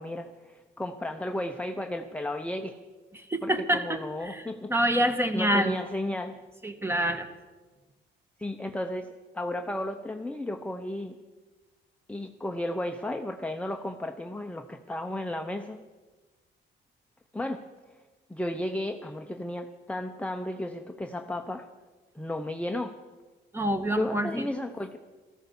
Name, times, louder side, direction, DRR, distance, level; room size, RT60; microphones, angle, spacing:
voice 1, 0.0-2.8 3.4-4.7 5.3-6.4 8.4-11.2 12.1-15.8 17.3-17.6 18.3-21.7 22.1-22.9 23.9-25.0, left 1 dB, 5° left, 5 dB, 0.9 m, -34 dB
voice 2, 3.3-4.4 4.7-5.7 6.6-7.3 23.5-24.5, right 1 dB, 10° right, 8 dB, 1.6 m, -26 dB
14.0 x 13.5 x 7.0 m, 1.3 s
cardioid pair, 90°, 20 cm